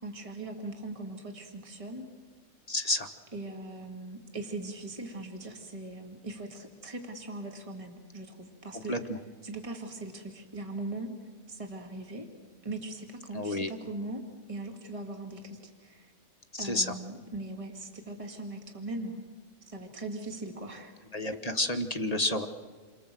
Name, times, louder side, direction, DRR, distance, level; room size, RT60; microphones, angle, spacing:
voice 1, 0.0-2.1 3.3-8.9 9.4-11.1 11.5-12.3 12.6-14.2 14.5-16.1 16.6-19.3 19.7-20.9, right 2 dB, 20° right, 2 dB, 2.5 m, -40 dB
voice 2, 2.7-3.1 8.9-9.2 13.3-13.7 16.5-16.9 21.1-22.5, left 1 dB, 25° left, 6 dB, 1.3 m, -30 dB
29.0 x 25.0 x 7.8 m, 1.5 s
omnidirectional pair, 1.6 m